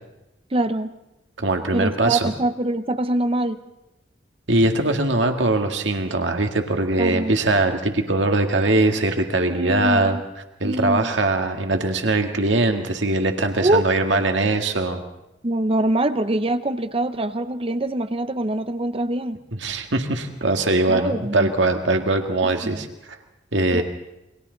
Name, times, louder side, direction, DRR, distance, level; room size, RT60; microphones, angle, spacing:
voice 1, 0.5-0.9 1.7-3.6 7.0-7.3 9.4-10.2 10.6-11.1 13.6-13.9 15.4-19.4 20.9-21.5 22.4-22.9 23.7-23.8, right 1 dB, 30° right, 11 dB, 0.8 m, -24 dB
voice 2, 1.4-2.3 4.5-10.2 10.6-15.0 19.5-23.2 23.5-23.8, right 2 dB, 85° right, 5 dB, 1.9 m, -21 dB
29.0 x 23.0 x 4.0 m, 0.92 s
head